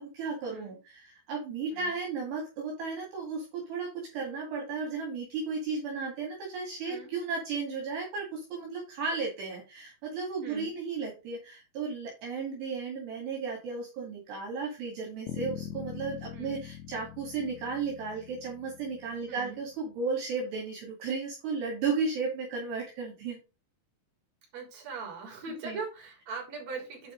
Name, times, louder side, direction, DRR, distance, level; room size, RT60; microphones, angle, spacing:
voice 1, 0.0-23.4 25.6-25.8, right 4 dB, 60° right, -1 dB, 3.9 m, -34 dB
voice 2, 10.4-10.7 16.3-16.6 19.3-19.6 24.5-27.1, right 4 dB, 35° right, 0 dB, 4.3 m, -40 dB
Bass guitar, 15.3-19.7, left 11 dB, 80° left, 2.8 m, -43 dB
8.0 x 5.4 x 5.0 m, 0.29 s
omnidirectional pair, 5.8 m